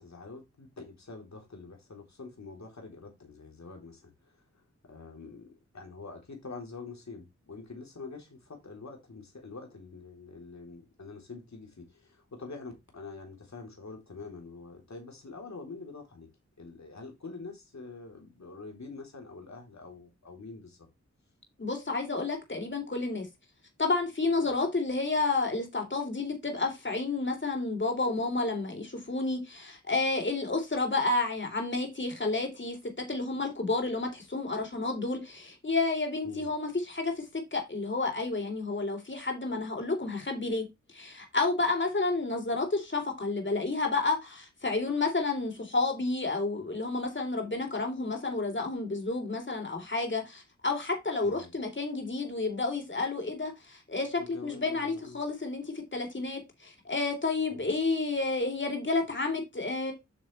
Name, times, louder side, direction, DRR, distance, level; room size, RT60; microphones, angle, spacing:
voice 1, 0.0-4.1 4.9-16.3 16.6-20.8 24.4-24.5 36.2-36.5 51.2-51.5 54.2-55.2 57.5-57.7, left 3 dB, 70° left, 3.6 m, -45 dB
voice 2, 21.6-23.3 23.8-40.6 40.9-55.6 55.9-59.9, left 3 dB, 40° left, 3.6 m, -30 dB
8.7 x 6.8 x 3.3 m
wide cardioid pair, 75°, 29 cm